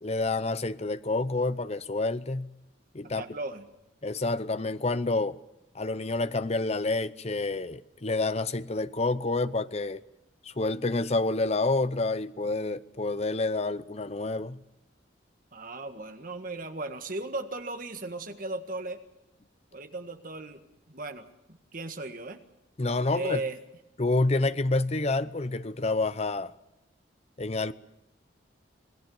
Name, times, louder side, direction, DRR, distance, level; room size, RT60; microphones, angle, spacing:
voice 1, 0.0-2.5 2.9-3.2 4.0-5.4 5.7-10.0 10.4-14.6 22.8-23.4 24.0-26.5 27.4-27.7, left 2 dB, 35° left, 0.8 m, -28 dB
voice 2, 3.2-3.7 15.5-19.0 19.7-20.6 20.9-22.4 23.1-23.6, right 2 dB, 45° right, 1.8 m, -36 dB
26.5 x 18.5 x 7.3 m
head